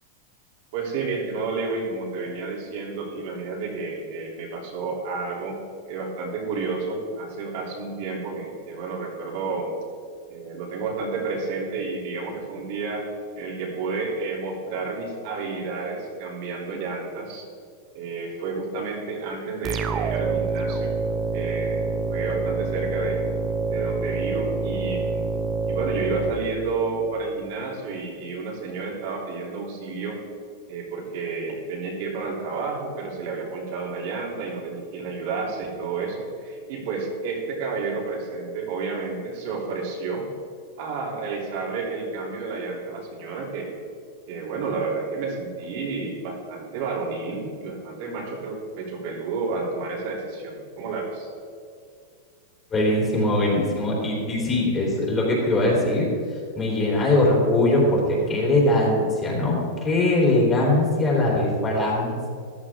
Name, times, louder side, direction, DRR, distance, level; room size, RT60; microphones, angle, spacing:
voice 1, 0.7-5.6 5.9-9.8 10.3-13.1 13.4-17.5 17.9-21.0 21.3-23.2 23.7-25.3 25.6-30.2 30.7-40.3 40.8-43.7 44.3-51.3, right 4 dB, 60° right, -3 dB, 3.3 m, -31 dB
sound 1, 19.6-27.1, right 4 dB, 25° right, 0.7 m, -27 dB
voice 2, 52.7-56.1 56.6-62.3, left 1 dB, 20° left, -3 dB, 3.7 m, -21 dB
14.0 x 11.0 x 3.8 m, 2.2 s
supercardioid pair, 150°, 0 cm